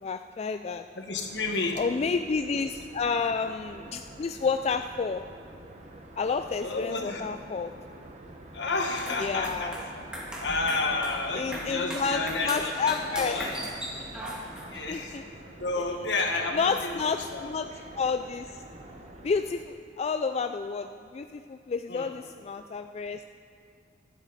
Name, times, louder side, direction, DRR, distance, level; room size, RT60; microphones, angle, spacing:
voice 1, 0.0-0.8 1.8-5.2 6.2-7.7 9.2-9.7 11.4-13.4 14.9-15.2 16.5-17.6 17.9-18.6 19.2-23.2, left 5 dB, 35° left, 7 dB, 0.3 m, -30 dB
voice 2, 0.9-1.8 6.6-7.3 8.5-9.8 10.4-13.7 14.7-15.2 15.6-17.5 21.9-22.1, left 3 dB, 70° left, 3 dB, 1.5 m, -31 dB
Estacio del Nort - Barcelona, 1.1-19.5, right 1 dB, 40° right, 1.2 m, -47 dB
sound 1, 8.9-14.9, equal, 5° right, 2.0 m, -39 dB
24.0 x 8.3 x 4.1 m, 2.4 s
head